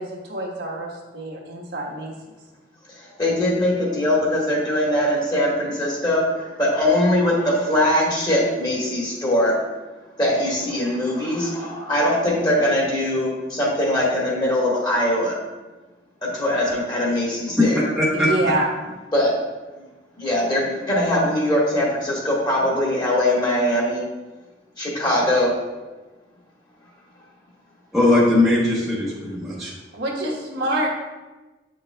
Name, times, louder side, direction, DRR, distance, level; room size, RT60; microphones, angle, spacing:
voice 1, 0.0-2.1 18.1-18.7 29.9-30.9, right 1 dB, 70° right, -2 dB, 1.2 m, -26 dB
voice 2, 3.0-9.6 10.2-15.4 16.2-17.8 19.1-19.3 19.7-19.8 20.2-24.0 24.8-25.5, left 1 dB, 25° left, -4 dB, 1.5 m, -21 dB
voice 3, 18.0-18.3 27.9-29.7, left 2 dB, ahead, -8 dB, 0.8 m, -19 dB
7.9 x 5.4 x 2.3 m, 1.2 s
head